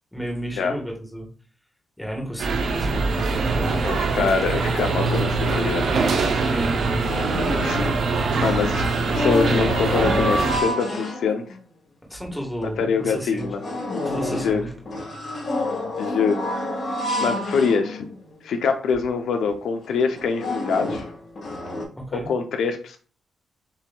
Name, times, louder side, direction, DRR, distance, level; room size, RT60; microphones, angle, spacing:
voice 1, 0.1-1.3 2.0-3.9 6.5-7.1 12.1-13.5 14.0-14.7 21.9-22.3, equal, 5° left, -1 dB, 1.4 m, -32 dB
sound 1, 2.4-10.6, right 3 dB, 60° right, 0.7 m, -23 dB
voice 2, 3.8-6.2 7.6-7.9 8.4-8.9 9.1-11.4 12.6-13.6 14.3-14.6 16.0-16.7 17.2-18.1 18.4-21.1 22.1-23.0, left 5 dB, 75° left, 6 dB, 0.5 m, -24 dB
sound 2, 6.0-6.1 6.4-8.1 8.3-11.6 12.1-12.2 12.6-12.7 13.2-18.4 18.9-19.0 19.3-19.5 20.0-21.8, left 1 dB, 50° left, 1.6 m, -28 dB
7.0 x 2.8 x 2.3 m, 0.40 s
cardioid pair, 130°, 0 cm